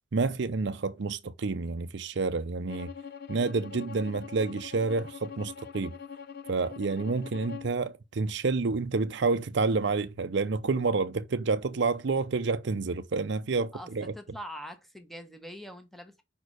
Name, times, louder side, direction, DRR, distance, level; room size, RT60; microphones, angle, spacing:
voice 1, 0.1-2.9 3.3-5.9 6.5-14.1, right 4 dB, 65° right, 0.6 m, -29 dB
Bowed string instrument, 2.7-7.8, left 6 dB, 55° left, 0.7 m, -43 dB
voice 2, 13.7-16.2, equal, ahead, 1.2 m, -43 dB
5.4 x 4.5 x 6.3 m
head